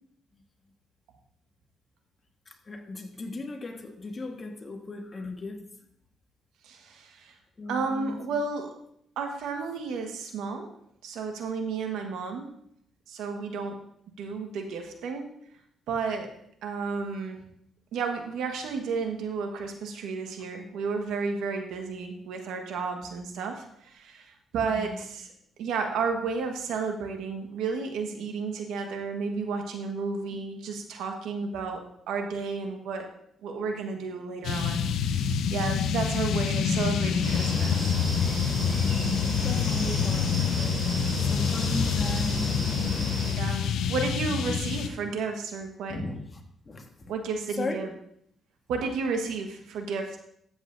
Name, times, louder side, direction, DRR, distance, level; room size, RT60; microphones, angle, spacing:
voice 1, 2.5-5.6 7.6-8.2 24.7-25.0 38.8-42.5 43.0-43.1 45.9-47.1 47.6-47.8, left 2 dB, 30° left, 4 dB, 1.5 m, -37 dB
voice 2, 6.6-7.3 7.7-8.7 9.2-10.7 11.0-12.5 13.1-13.8 14.2-15.3 15.9-16.3 16.6-17.4 17.9-25.3 25.6-33.1 33.4-37.9 39.8-40.1 43.4-46.0 47.1-47.9 48.7-50.2, right 4 dB, 85° right, 4 dB, 1.4 m, -32 dB
sound 1, 34.4-44.9, left 7 dB, 80° left, 0.7 m, -27 dB
sound 2, 37.2-43.3, right 2 dB, 40° right, 3.0 m, -36 dB
13.5 x 7.9 x 2.6 m, 0.71 s
cardioid pair, 90°, 0 cm